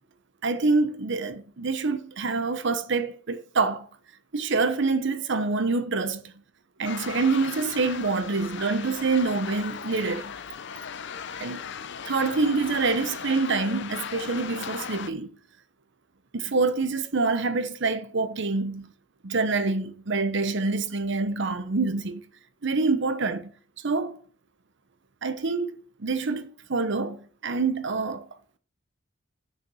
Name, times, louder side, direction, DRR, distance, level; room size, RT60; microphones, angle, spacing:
voice 1, 0.4-3.9 4.3-6.2 6.8-10.3 11.4-11.6 12.1-15.4 16.3-18.9 19.2-22.2 22.6-23.5 23.8-24.2 25.2-25.7 26.0-28.3, right 3 dB, 65° right, 0.9 m, -26 dB
sound 1, 6.8-15.1, left 7 dB, 65° left, 0.6 m, -37 dB
6.9 x 5.9 x 6.1 m
head